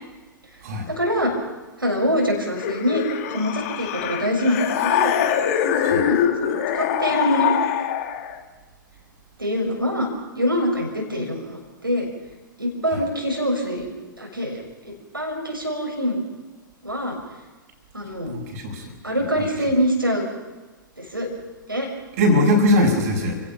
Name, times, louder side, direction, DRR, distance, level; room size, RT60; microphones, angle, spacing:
voice 1, 0.9-1.3 1.8-3.0 3.3-5.1 5.6-7.5 9.4-10.1 10.3-12.1 12.6-13.9 14.2-16.2 16.8-17.2 17.9-18.3 19.0-20.3 21.0-21.3 21.7-21.9, equal, 90° right, -1 dB, 6.3 m, -24 dB
sound 1, 2.6-8.4, left 10 dB, 45° left, 2.0 m, -23 dB
voice 2, 18.3-18.9 22.2-23.4, left 1 dB, 45° right, 1 dB, 5.9 m, -20 dB
29.5 x 17.0 x 6.0 m, 1.2 s
figure-of-eight pair, 110°, 11 cm